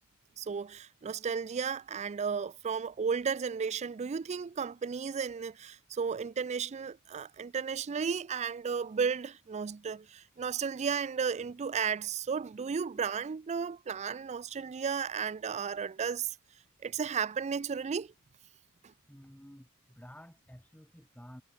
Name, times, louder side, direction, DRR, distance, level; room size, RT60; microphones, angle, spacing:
voice 1, 0.4-16.4 16.8-18.1 18.8-18.9, right 6 dB, 30° right, 0.4 m, -34 dB
voice 2, 19.1-21.4, equal, 5° left, 5.2 m, -52 dB
head